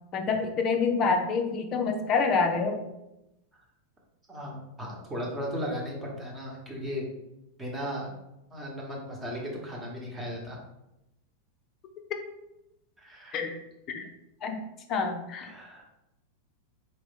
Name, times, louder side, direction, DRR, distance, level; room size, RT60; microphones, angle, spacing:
voice 1, 0.1-2.9 12.1-12.2 13.3-13.6 13.9-14.1 14.4-14.6 14.9-15.5, left 4 dB, 30° left, 4 dB, 0.6 m, -27 dB
voice 2, 4.3-7.1 7.6-8.1 8.5-10.6 13.0-13.4 15.5-15.8, equal, 15° right, -2 dB, 1.2 m, -36 dB
4.1 x 2.9 x 3.6 m, 0.90 s
figure-of-eight pair, 90°, 0 cm